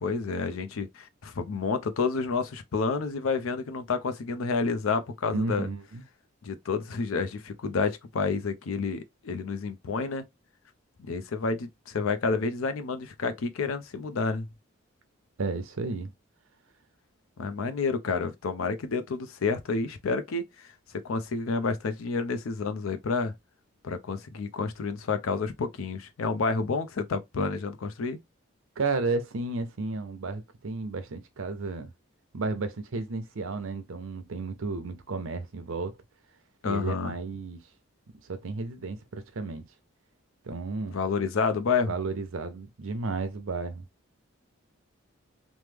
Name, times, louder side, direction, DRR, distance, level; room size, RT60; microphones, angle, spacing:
voice 1, 0.0-5.7 6.4-10.3 11.1-14.5 17.4-20.7 21.0-23.3 23.8-28.2 36.6-37.1 40.9-41.9, left 4 dB, 85° left, 0.5 m, -29 dB
voice 2, 5.3-6.0 15.4-16.1 28.8-31.9 32.3-35.9 36.6-37.6 38.2-39.6 40.4-41.0 41.9-43.9, right 3 dB, 80° right, 0.6 m, -32 dB
3.0 x 2.0 x 3.3 m
head